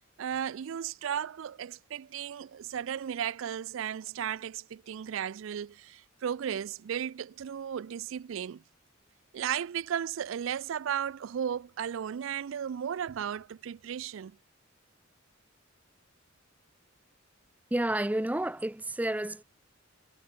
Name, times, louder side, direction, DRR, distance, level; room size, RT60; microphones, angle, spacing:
voice 1, 0.2-8.6 9.3-14.4, right 8 dB, 65° right, 0.4 m, -35 dB
voice 2, 17.7-19.4, right 1 dB, 5° right, 0.5 m, -30 dB
head